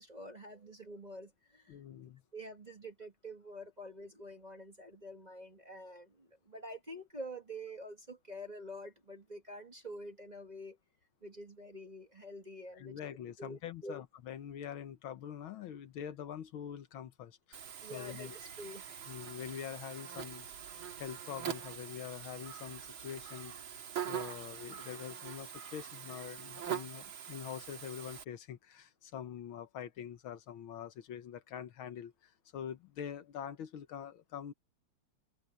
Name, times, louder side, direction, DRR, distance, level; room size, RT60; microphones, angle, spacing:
voice 1, 0.0-1.8 2.3-10.8 11.2-13.0 13.4-14.0 17.8-19.1, equal, 20° right, 1.7 m, -47 dB
voice 2, 1.7-2.2 12.7-18.3 19.1-34.5, left 9 dB, 75° left, 1.8 m, -45 dB
Buzz, 17.5-28.2, right 9 dB, 70° right, 2.6 m, -44 dB
omnidirectional pair, 2.4 m